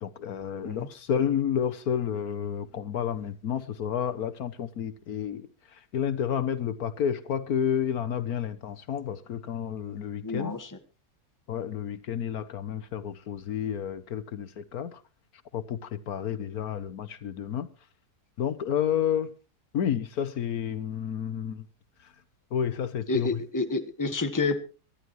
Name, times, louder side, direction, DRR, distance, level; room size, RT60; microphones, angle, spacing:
voice 1, 0.0-10.5 11.5-15.0 15.5-17.7 18.4-19.3 19.7-21.7 22.5-23.3, left 8 dB, 70° left, 1.4 m, -30 dB
voice 2, 10.2-10.8 23.1-24.6, left 3 dB, 15° left, 1.2 m, -29 dB
23.5 x 12.0 x 3.1 m
omnidirectional pair, 1.7 m